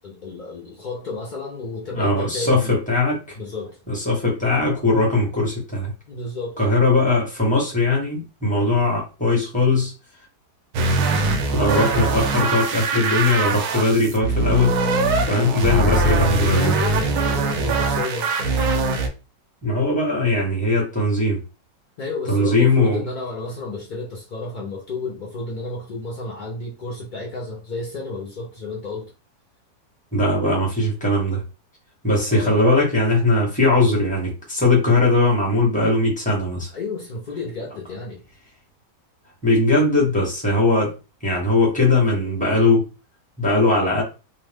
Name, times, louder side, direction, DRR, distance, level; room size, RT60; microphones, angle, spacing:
voice 1, 0.0-2.8 3.4-3.8 6.1-6.6 16.6-18.7 22.0-29.1 32.3-32.6 36.7-38.2, left 3 dB, 80° left, 0.4 m, -32 dB
voice 2, 1.9-3.3 3.9-5.9 6.6-9.9 11.5-14.7 15.3-16.7 19.6-21.4 22.3-23.0 30.1-31.4 32.0-36.7 39.4-40.9 41.2-42.9 43.4-44.0, left 2 dB, 5° left, 0.8 m, -19 dB
sound 1, 10.7-19.1, right 2 dB, 70° right, 0.8 m, -21 dB
3.0 x 2.0 x 3.3 m
omnidirectional pair, 1.8 m